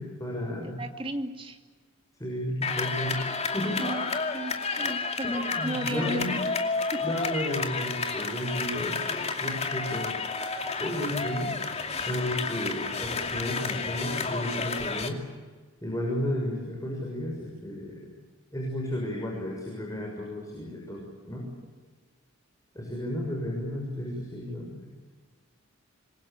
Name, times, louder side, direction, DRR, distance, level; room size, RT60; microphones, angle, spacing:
voice 1, 0.0-0.8 2.2-3.2 3.5-3.8 5.2-6.4 7.0-10.1 10.8-15.2 15.8-18.1 18.5-21.4 22.7-24.9, left 1 dB, 15° left, -1 dB, 6.5 m, -33 dB
voice 2, 0.6-1.6 3.8-6.6 6.9-7.0 21.3-21.5, right 1 dB, 25° right, 5 dB, 2.5 m, -35 dB
sound 1, 2.6-15.1, left 4 dB, 30° left, 2.6 m, -31 dB
27.0 x 22.5 x 8.8 m, 1.4 s
head